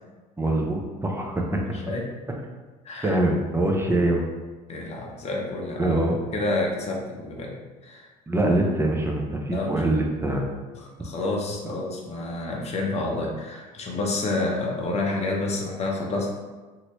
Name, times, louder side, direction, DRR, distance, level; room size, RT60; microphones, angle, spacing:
voice 1, 0.4-1.6 3.0-4.2 5.8-6.2 8.3-10.4, right 1 dB, 10° right, 0 dB, 0.6 m, -24 dB
voice 2, 2.8-3.2 4.7-6.0 6.3-7.6 7.8-8.1 9.5-10.0 11.0-16.3, left 2 dB, 30° left, -1 dB, 0.7 m, -29 dB
2.8 x 2.7 x 3.1 m, 1.3 s
hypercardioid pair, 70°, 21 cm